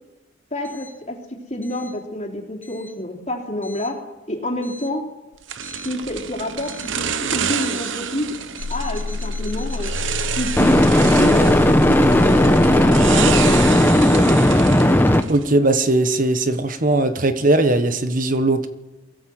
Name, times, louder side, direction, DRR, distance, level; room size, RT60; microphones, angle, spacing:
voice 1, 0.5-1.2 1.5-4.0 4.3-5.0 5.8-8.3 8.7-9.9 10.4-14.4, left 1 dB, 35° left, -1 dB, 3.4 m, -27 dB
sound 1, 5.5-15.6, right 7 dB, 75° right, 0.9 m, -29 dB
sound 2, 5.7-5.9 10.6-15.2, left 1 dB, 10° left, 1.1 m, -15 dB
sound 3, 8.6-13.7, left 3 dB, 75° left, 0.7 m, -28 dB
voice 2, 15.3-18.7, right 2 dB, 45° right, 9 dB, 1.3 m, -19 dB
23.0 x 16.0 x 7.9 m, 1.1 s
head